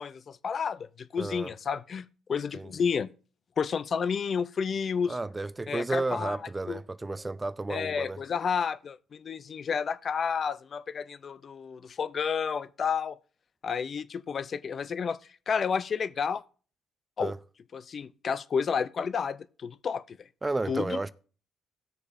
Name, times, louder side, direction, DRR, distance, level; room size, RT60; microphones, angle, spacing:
voice 1, 0.0-3.1 3.6-5.2 5.7-6.4 6.7-6.8 7.7-13.2 13.6-15.2 15.5-16.4 17.2-17.3 17.7-20.2 20.7-21.1, left 6 dB, 50° left, 0.4 m, -31 dB
voice 2, 1.2-1.5 2.5-2.7 5.1-8.2 17.2-17.4 20.4-21.1, right 2 dB, 20° right, 0.4 m, -32 dB
17.0 x 6.6 x 2.5 m
cardioid pair, 80°, 0 cm